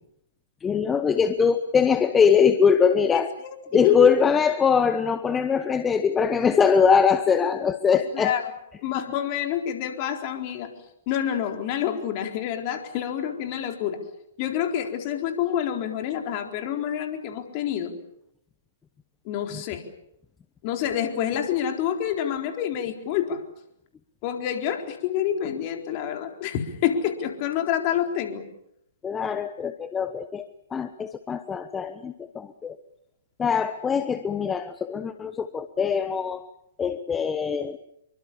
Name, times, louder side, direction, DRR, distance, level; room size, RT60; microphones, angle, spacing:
voice 1, 0.6-3.3 3.7-8.4 8.9-9.0 29.0-32.8 33.4-36.4 36.8-37.8, left 6 dB, 15° left, 10 dB, 1.1 m, -22 dB
voice 2, 3.1-4.1 8.1-8.4 8.8-10.7 11.1-14.0 14.4-17.9 19.2-19.8 20.6-23.4 24.2-28.4, left 10 dB, 40° left, 4 dB, 4.1 m, -27 dB
27.5 x 24.0 x 7.2 m, 0.77 s
figure-of-eight pair, 120°, 0 cm